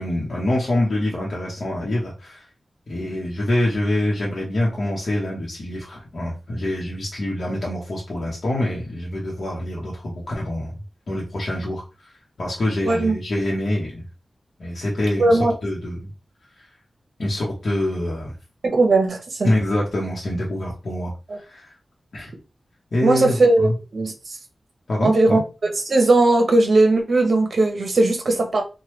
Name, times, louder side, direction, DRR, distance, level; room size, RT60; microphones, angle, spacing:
voice 1, 0.0-2.4 2.9-10.7 11.1-12.1 12.4-14.0 14.6-16.1 17.2-18.3 19.4-21.1 21.4-21.7 22.1-22.3 22.9-23.7 24.9-25.4, left 1 dB, 65° left, 0.9 m, -25 dB
voice 2, 12.8-13.1 15.2-15.5 18.6-19.5 21.3-21.4 23.0-24.1 25.0-28.6, right 2 dB, 60° right, 0.8 m, -18 dB
3.1 x 2.2 x 3.1 m
wide cardioid pair, 120°, 0 cm